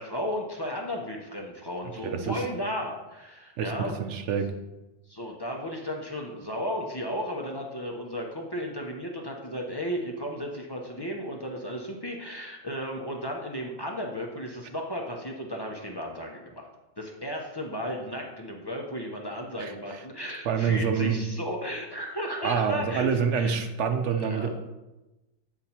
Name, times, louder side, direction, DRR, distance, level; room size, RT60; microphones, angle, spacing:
voice 1, 0.0-3.9 5.1-16.7 17.0-23.6 24.1-24.5, equal, 25° left, 0 dB, 0.6 m, -34 dB
voice 2, 2.0-2.4 3.6-4.5 19.6-20.0 20.4-21.3 22.4-24.5, right 6 dB, 85° right, 7 dB, 1.0 m, -27 dB
7.9 x 4.1 x 4.3 m, 1.0 s
omnidirectional pair, 1.2 m